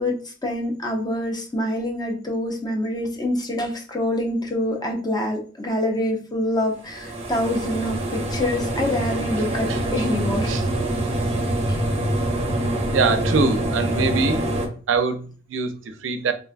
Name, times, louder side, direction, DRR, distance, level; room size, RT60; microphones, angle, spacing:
voice 1, 0.0-10.5 11.7-11.8, left 1 dB, 20° left, 1 dB, 0.5 m, -26 dB
sound 1, 6.8-14.7, right 1 dB, 30° right, 0.6 m, -25 dB
voice 2, 12.9-14.5 14.9-16.3, right 4 dB, 90° right, 9 dB, 0.4 m, -23 dB
3.5 x 2.3 x 2.4 m, 0.40 s
head